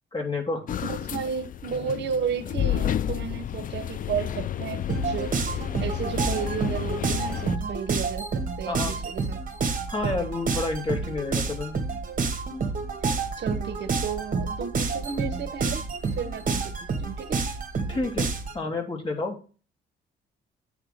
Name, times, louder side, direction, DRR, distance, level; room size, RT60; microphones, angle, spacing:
voice 1, 0.1-0.6 8.7-9.0 9.9-11.8 17.9-19.4, left 3 dB, 25° left, 2.7 m, -30 dB
sound 1, 0.7-7.6, left 10 dB, 45° left, 0.4 m, -31 dB
voice 2, 0.8-9.4 13.4-15.8 16.1-17.4, right 7 dB, 60° right, 0.9 m, -33 dB
sound 2, 4.9-18.6, right 4 dB, 45° right, 1.5 m, -29 dB
8.9 x 3.6 x 6.3 m
cardioid pair, 90°, 20 cm